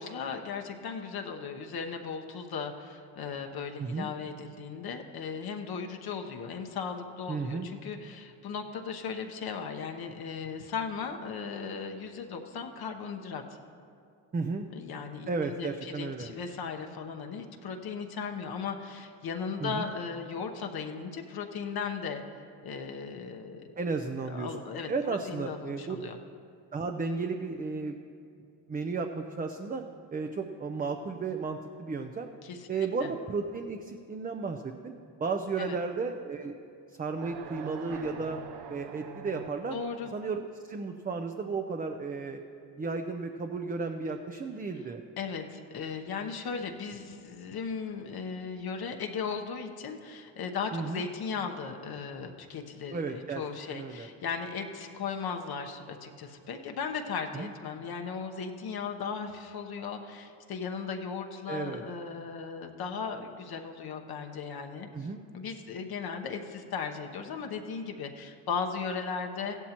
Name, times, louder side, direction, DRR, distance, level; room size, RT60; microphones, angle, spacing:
voice 1, 0.0-13.6 14.7-22.2 22.6-23.7 24.2-26.2 32.4-33.1 35.6-35.8 39.7-40.1 45.2-65.1 65.3-69.6, left 5 dB, 60° left, 3 dB, 1.0 m, -37 dB
voice 2, 3.8-4.1 7.3-7.7 14.3-14.7 15.3-16.3 19.6-19.9 23.8-24.5 24.9-26.0 26.7-28.0 28.7-29.8 30.1-32.3 32.7-34.9 35.2-36.5 37.0-38.4 38.7-39.8 40.1-42.4 42.8-45.0 50.7-51.0 52.9-53.4 53.7-54.1 57.3-57.5 61.5-61.8 64.9-65.2, right 4 dB, 20° right, 5 dB, 0.5 m, -33 dB
sound 1, 37.2-40.1, right 6 dB, 80° right, 0.8 m, -44 dB
15.5 x 11.5 x 2.9 m, 2.4 s
cardioid pair, 80°, 43 cm